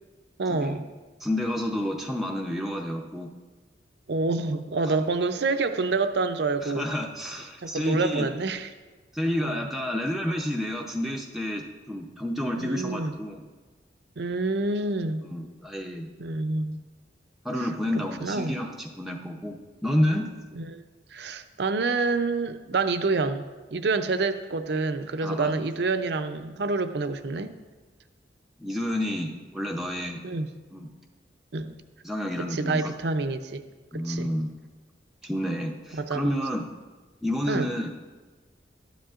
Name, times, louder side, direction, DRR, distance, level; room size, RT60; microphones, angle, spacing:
voice 1, 0.4-0.8 4.1-6.8 7.6-8.7 9.4-9.7 12.5-13.1 14.2-15.3 16.2-16.8 18.2-18.6 20.5-20.8 21.1-23.4 23.7-27.5 30.2-30.5 31.5-31.7 32.4-33.6 33.9-34.3 35.9-36.3 37.5-37.7, right 3 dB, 70° right, 9 dB, 0.6 m, -27 dB
voice 2, 1.2-3.3 4.8-4.9 6.6-8.3 9.1-13.4 15.2-16.1 17.4-20.3 25.2-25.5 28.6-30.2 30.7-30.9 32.0-32.9 33.9-34.5 35.2-36.6 37.2-37.9, left 1 dB, ahead, -1 dB, 0.6 m, -29 dB
12.5 x 10.0 x 2.5 m, 1.3 s
head